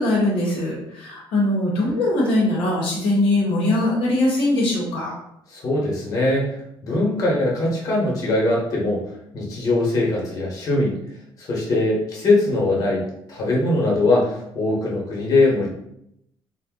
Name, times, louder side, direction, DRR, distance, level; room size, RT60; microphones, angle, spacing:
voice 1, 0.0-5.1, left 1 dB, 70° left, -3 dB, 0.8 m, -21 dB
voice 2, 5.5-6.5 6.8-9.0 9.3-11.0 11.4-15.7, left 2 dB, 40° left, -3 dB, 0.9 m, -21 dB
2.6 x 2.1 x 3.6 m, 0.78 s
cardioid pair, 160°, 9 cm